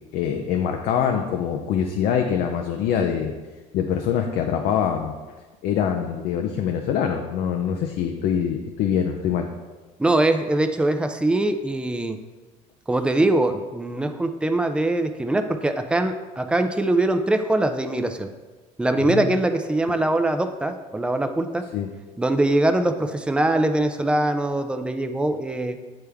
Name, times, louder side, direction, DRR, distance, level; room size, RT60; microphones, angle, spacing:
voice 1, 0.1-3.3 3.7-5.1 5.6-9.5 19.1-19.3 21.7-21.9, left 8 dB, 75° left, 3 dB, 0.5 m, -24 dB
voice 2, 10.0-12.2 12.9-18.3 18.8-21.6 22.2-25.8, right 2 dB, 5° right, 7 dB, 0.5 m, -22 dB
8.4 x 3.3 x 3.4 m, 1.3 s
cardioid pair, 100°, 15 cm